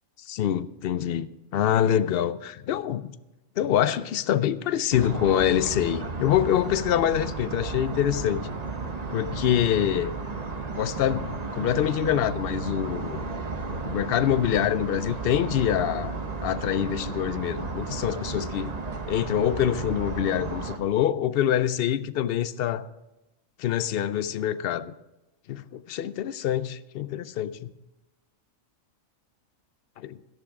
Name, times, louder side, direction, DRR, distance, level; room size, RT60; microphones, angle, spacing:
voice 1, 0.3-3.1 3.6-8.5 9.1-10.1 10.7-13.2 13.8-16.1 16.4-18.7 19.1-22.9 23.6-24.9 25.5-27.7 30.1-30.2, left 10 dB, 65° left, 0.6 m, -25 dB
sound 1, 4.9-20.8, right 3 dB, 35° right, 1.1 m, -33 dB
14.0 x 10.5 x 4.8 m
omnidirectional pair, 1.4 m